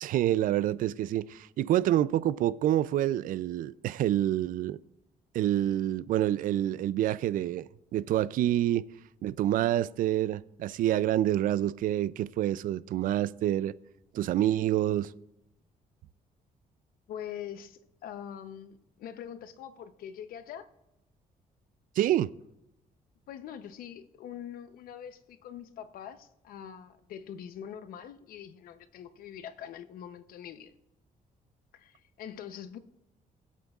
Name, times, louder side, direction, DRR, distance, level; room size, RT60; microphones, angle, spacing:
voice 1, 0.0-4.8 5.3-8.9 9.2-13.7 14.1-15.1 22.0-22.3, right 12 dB, 70° right, 0.4 m, -27 dB
voice 2, 17.1-18.7 19.0-20.7 23.3-30.7 31.7-32.8, left 9 dB, 85° left, 0.8 m, -43 dB
21.0 x 8.3 x 2.4 m
cardioid pair, 140°, 15 cm